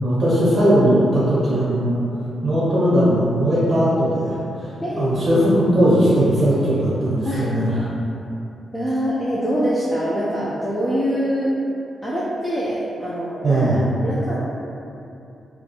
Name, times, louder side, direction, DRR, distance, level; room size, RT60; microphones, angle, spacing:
voice 1, 0.0-2.0 2.4-7.9 13.4-13.8, equal, 45° right, -9 dB, 0.7 m, -18 dB
voice 2, 4.8-5.5 7.3-7.5 8.7-11.6 12.0-14.4, equal, 5° left, -9 dB, 0.3 m, -24 dB
2.5 x 2.3 x 2.7 m, 2.8 s
cardioid pair, 110°, 0 cm